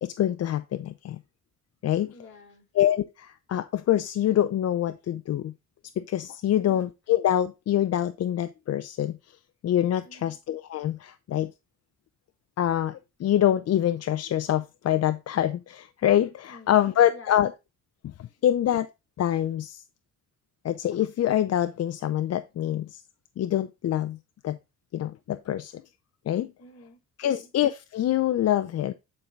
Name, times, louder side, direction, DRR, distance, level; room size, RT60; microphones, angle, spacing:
voice 1, 0.0-1.2 1.8-2.1 2.8-5.5 6.0-9.2 9.6-11.5 12.6-17.5 18.2-18.9 19.2-19.8 20.6-23.0 23.4-24.2 24.4-24.6 24.9-25.8 26.3-26.5 27.2-28.9, left 11 dB, 55° left, 0.6 m, -25 dB
voice 2, 2.1-2.7 6.5-6.9 10.0-10.4 16.5-17.4 18.4-18.5 26.6-27.5, left 2 dB, 40° left, 4.9 m, -50 dB
9.8 x 4.7 x 3.6 m
cardioid pair, 90°, 30 cm